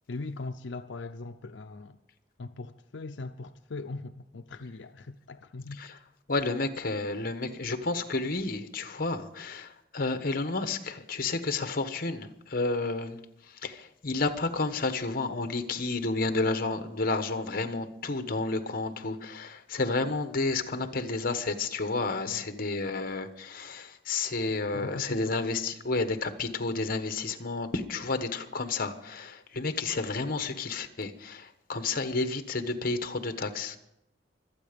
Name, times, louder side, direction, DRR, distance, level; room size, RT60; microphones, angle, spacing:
voice 1, 0.1-2.0 2.4-5.8 22.3-22.4 24.7-25.4, left 3 dB, 85° left, 7 dB, 0.6 m, -40 dB
voice 2, 6.3-13.2 13.5-33.8, left 3 dB, 55° left, 9 dB, 1.2 m, -31 dB
24.5 x 8.9 x 5.2 m, 0.82 s
head